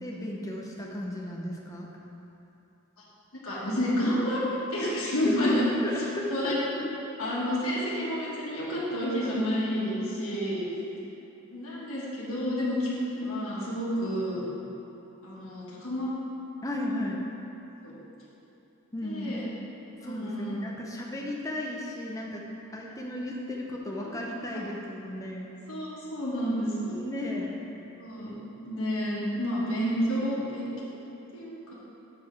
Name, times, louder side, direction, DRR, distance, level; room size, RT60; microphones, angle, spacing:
voice 1, 0.0-1.9 5.2-6.9 16.6-17.3 18.9-19.4 20.0-22.4 22.7-25.5 26.9-27.6, left 1 dB, 15° left, -2 dB, 0.6 m, -34 dB
voice 2, 3.4-5.6 6.3-6.6 7.2-10.6 11.5-14.4 15.2-16.1 17.8-17.9 19.0-19.4 20.0-20.6 24.0-24.1 24.5-24.6 25.7-27.0 28.0-28.4 28.6-30.7 31.3-31.7, equal, 75° left, -7 dB, 1.5 m, -30 dB
6.7 x 4.9 x 4.6 m, 2.9 s
head